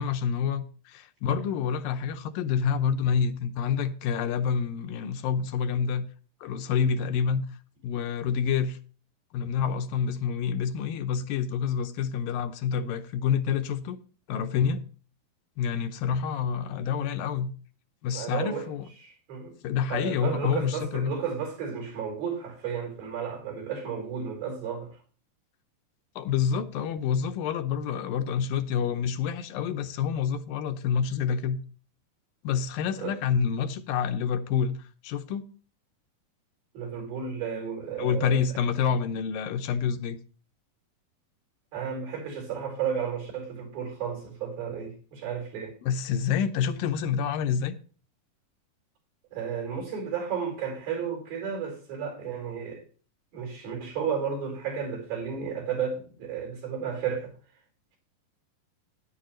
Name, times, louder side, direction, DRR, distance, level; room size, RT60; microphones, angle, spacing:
voice 1, 0.0-6.1 6.4-7.4 7.8-8.8 9.3-14.0 14.3-14.8 15.6-17.5 18.0-18.9 19.6-21.1 26.2-31.6 32.4-34.8 35.0-35.5 38.0-40.2 45.8-47.8, left 7 dB, 80° left, 2.4 m, -28 dB
voice 2, 18.1-18.7 19.0-19.5 19.9-25.0 33.0-33.1 36.7-38.4 41.7-45.8 49.3-52.8 53.3-57.3, right 7 dB, 85° right, 6.1 m, -33 dB
11.5 x 10.5 x 3.0 m
omnidirectional pair, 4.1 m